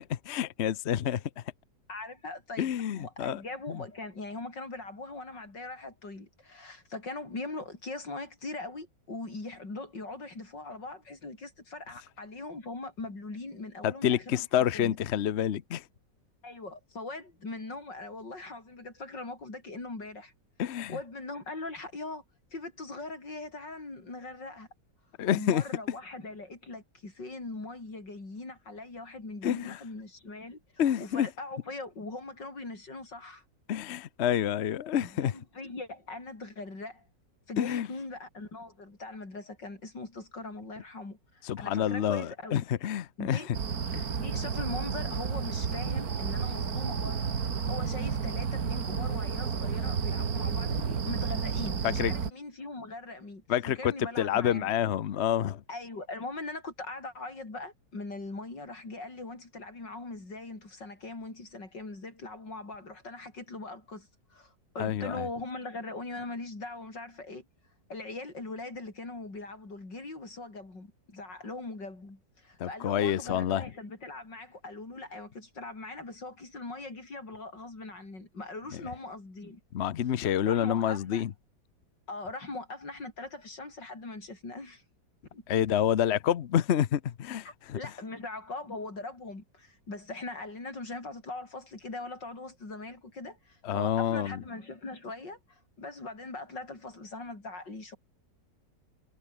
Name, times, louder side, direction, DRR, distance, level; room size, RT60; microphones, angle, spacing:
voice 1, 0.1-1.4 2.6-3.4 3.7-3.8 13.8-15.8 20.6-21.0 25.2-25.6 29.4-29.8 30.8-31.3 33.7-35.3 37.6-37.9 41.4-43.4 43.9-44.1 51.8-52.1 53.5-55.6 64.8-65.3 72.6-73.7 78.7-78.8 79.7-81.3 85.5-87.8 93.6-94.4, left 10 dB, 50° left, 0.8 m, -28 dB
voice 2, 1.9-14.5 14.7-15.0 16.4-20.3 20.9-22.2 22.5-24.7 25.3-30.6 31.0-33.4 35.0-37.1 37.5-42.6 43.2-43.5 44.1-47.4 47.7-54.7 55.7-67.4 67.9-79.6 80.5-81.2 82.1-84.8 85.3-85.4 87.4-98.0, left 2 dB, 85° left, 6.7 m, -41 dB
sound 1, 43.5-52.3, right 6 dB, 60° right, 2.2 m, -31 dB
omnidirectional pair, 1.9 m